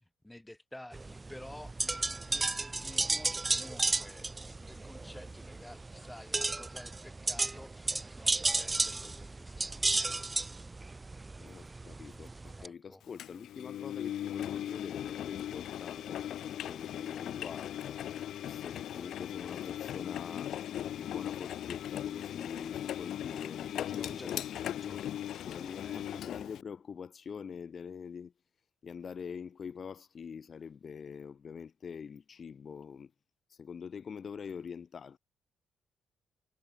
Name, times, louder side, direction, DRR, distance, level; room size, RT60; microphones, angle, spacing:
voice 1, 0.2-1.8 2.3-10.2 10.6-10.8 12.6-13.0 23.9-25.1 25.8-26.0, left 1 dB, 10° left, 7.1 m, -52 dB
sound 1, 0.9-12.7, right 3 dB, 20° right, 1.6 m, -34 dB
voice 2, 11.4-20.5 20.9-25.0 25.5-28.3 28.8-33.1 33.6-35.2, left 6 dB, 45° left, 6.0 m, -45 dB
Engine, 13.2-26.6, left 11 dB, 70° left, 1.3 m, -38 dB
cardioid pair, 85°, 0 cm